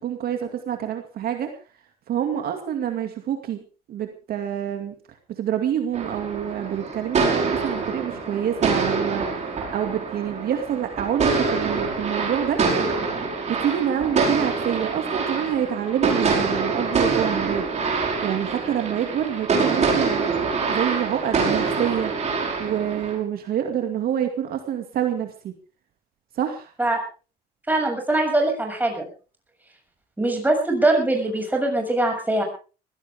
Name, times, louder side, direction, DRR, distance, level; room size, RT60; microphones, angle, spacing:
voice 1, 0.0-1.5 2.1-3.6 3.9-4.9 5.3-12.6 13.5-17.6 18.2-20.4 20.7-22.1 22.6-25.5 26.3-26.7, right 9 dB, 65° right, 5 dB, 2.3 m, -27 dB
sound 1, 5.9-23.2, right 4 dB, 40° right, 5.3 m, -25 dB
voice 2, 27.7-29.0 30.2-32.4, right 2 dB, 10° right, 3 dB, 6.8 m, -22 dB
20.5 x 16.0 x 3.6 m, 0.35 s
cardioid pair, 110°, 17 cm